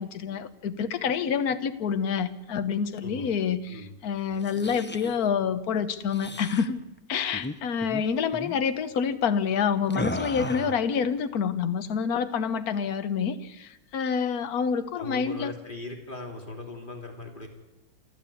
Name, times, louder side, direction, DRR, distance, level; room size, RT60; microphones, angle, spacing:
voice 1, 0.0-6.8 7.1-15.5, left 6 dB, 70° left, 10 dB, 1.6 m, -27 dB
sound 1, 4.3-5.2 6.1-6.7 7.3-7.6 7.8-8.0 8.3-8.6 9.9-10.9, left 1 dB, 15° left, 0.4 m, -35 dB
voice 2, 10.3-10.8 15.0-17.5, left 2 dB, 30° left, 2 dB, 3.3 m, -39 dB
26.5 x 13.0 x 8.5 m, 1.0 s
omnidirectional pair, 1.7 m